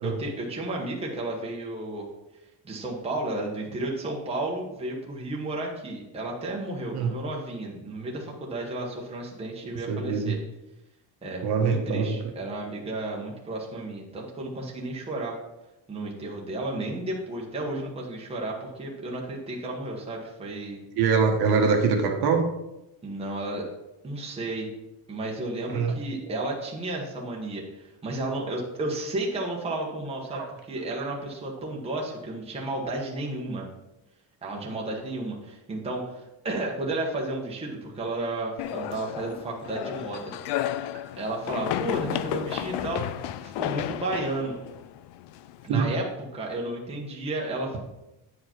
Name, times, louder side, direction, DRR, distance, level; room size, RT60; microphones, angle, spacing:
voice 1, 0.0-2.1 2.6-10.4 11.2-15.4 15.9-20.8 23.0-23.6 24.0-24.7 25.1-33.6 34.4-40.6 41.2-44.5 45.6-46.0 46.3-47.8, right 2 dB, 15° right, -2 dB, 1.2 m, -33 dB
voice 2, 9.7-10.3 11.4-12.2 20.9-22.4 25.7-25.9 26.3-26.4 30.3-30.5 45.7-45.9, right 5 dB, 60° right, 2 dB, 1.3 m, -24 dB
sound 1, 38.6-45.7, left 12 dB, 70° left, 0.5 m, -33 dB
9.4 x 4.9 x 4.4 m, 0.94 s
cardioid pair, 180°, 43 cm